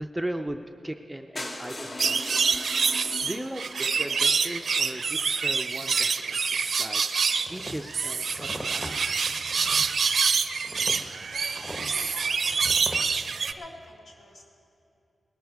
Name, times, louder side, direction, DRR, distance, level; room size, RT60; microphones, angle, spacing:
voice 1, 0.0-2.3 2.7-2.8 3.2-9.4, right 1 dB, 10° right, 5 dB, 0.5 m, -38 dB
sound 1, 1.4-5.2 5.9-6.0 6.2-6.3 6.6-6.7 6.9-7.0, left 1 dB, 40° left, 1.3 m, -40 dB
sound 2, 2.0-13.5, right 5 dB, 65° right, 0.5 m, -26 dB
sound 3, 7.4-13.1, equal, 10° left, 1.2 m, -41 dB
voice 2, 11.3-12.6 13.4-14.4, left 1 dB, 65° left, -2 dB, 2.4 m, -47 dB
19.5 x 11.5 x 4.7 m, 2.8 s
wide cardioid pair, 90°, 0 cm